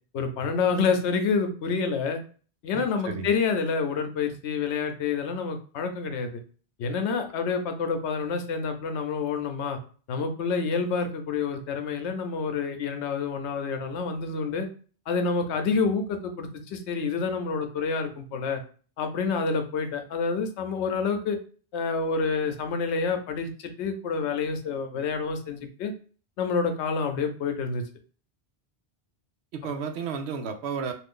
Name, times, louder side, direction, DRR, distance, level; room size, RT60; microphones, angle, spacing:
voice 1, 0.1-2.2 2.6-6.4 6.8-9.8 10.1-14.7 15.1-18.6 19.0-21.4 21.7-25.9 26.4-27.8, left 5 dB, 85° left, 6 dB, 0.9 m, -28 dB
voice 2, 2.7-3.3 29.5-30.9, right 5 dB, 75° right, 6 dB, 0.8 m, -33 dB
2.5 x 2.5 x 3.6 m, 0.40 s
omnidirectional pair, 1.1 m